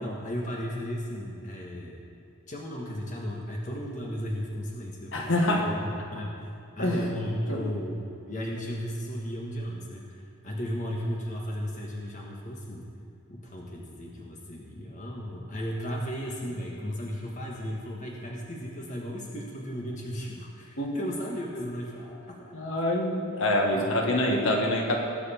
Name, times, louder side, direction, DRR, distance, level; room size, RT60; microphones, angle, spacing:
voice 1, 0.0-2.0 2.5-8.0 8.3-12.9 13.3-22.6 23.7-24.0, equal, 40° left, -2 dB, 1.5 m, -35 dB
voice 2, 5.1-5.7 6.8-7.0 7.5-7.6 20.8-20.9 22.5-25.0, left 1 dB, 70° left, 0 dB, 1.9 m, -25 dB
20.0 x 7.9 x 4.4 m, 2.5 s
head